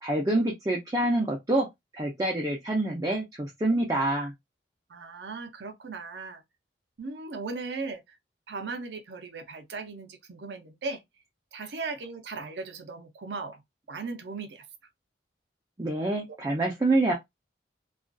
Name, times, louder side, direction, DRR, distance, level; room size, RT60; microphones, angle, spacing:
voice 1, 0.0-1.7 1.9-4.3 15.8-17.1, right 2 dB, 20° right, 0.4 m, -26 dB
voice 2, 4.9-6.4 7.0-8.2 8.5-11.0 11.5-13.6 13.9-14.7, right 4 dB, 75° right, 0.5 m, -37 dB
2.5 x 2.4 x 2.2 m
head